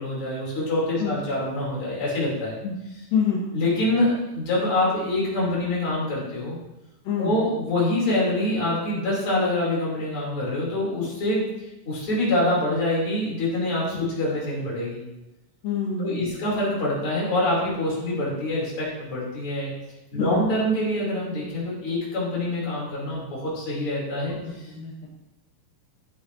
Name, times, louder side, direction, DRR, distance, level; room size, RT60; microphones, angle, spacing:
voice 1, 0.0-2.6 3.5-6.6 7.2-11.4 11.9-15.0 16.0-19.7 20.1-24.4, left 1 dB, 40° left, -6 dB, 3.7 m, -25 dB
voice 2, 3.1-3.5 7.1-7.3 13.9-14.0 15.6-16.4 20.2-20.4 24.7-25.1, left 6 dB, 80° left, -2 dB, 2.7 m, -26 dB
12.5 x 7.9 x 2.7 m, 0.98 s
omnidirectional pair, 3.9 m